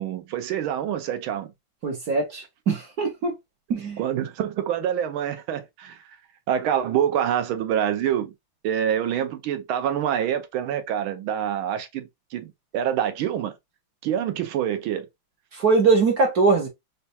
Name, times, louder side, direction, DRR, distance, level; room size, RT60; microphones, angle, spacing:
voice 1, 0.0-1.5 4.0-6.0 6.5-8.3 8.6-13.5 14.0-15.1, right 10 dB, 80° right, 1.5 m, -26 dB
voice 2, 1.8-3.3 3.7-4.0 15.5-16.7, right 4 dB, 60° right, 1.1 m, -21 dB
4.2 x 2.3 x 2.7 m
omnidirectional pair, 2.3 m